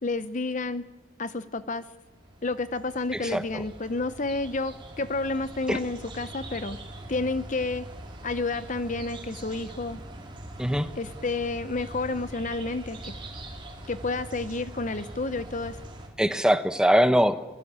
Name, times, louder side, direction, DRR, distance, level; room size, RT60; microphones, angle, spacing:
voice 1, 0.0-0.8 1.2-1.8 2.4-6.8 7.1-7.9 8.2-10.0 11.0-13.1 13.9-15.8, left 3 dB, 35° left, 13 dB, 0.7 m, -30 dB
sound 1, 1.9-16.1, right 1 dB, 25° right, 4.1 m, -43 dB
voice 2, 3.1-3.6 5.7-5.8 10.6-10.9 16.2-17.4, equal, 5° right, 9 dB, 1.0 m, -22 dB
24.0 x 21.0 x 8.8 m, 1.1 s
head